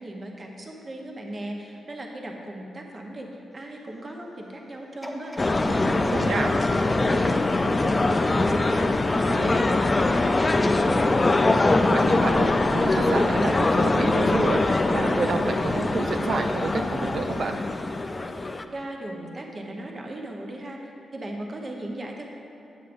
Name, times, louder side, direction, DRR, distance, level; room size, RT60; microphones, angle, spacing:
voice 1, 0.0-3.3 3.5-11.2 18.7-22.3, right 1 dB, 35° right, 0 dB, 0.8 m, -37 dB
sound 1, 5.0-8.1 8.6-8.7, equal, 5° left, 0.8 m, -42 dB
sound 2, 5.4-18.6, left 2 dB, 30° left, 0.3 m, -22 dB
voice 2, 5.7-6.5 9.3-9.6 11.9-17.6, right 4 dB, 65° right, 6 dB, 0.4 m, -30 dB
8.3 x 7.2 x 2.6 m, 2.8 s
cardioid pair, 80°, 0 cm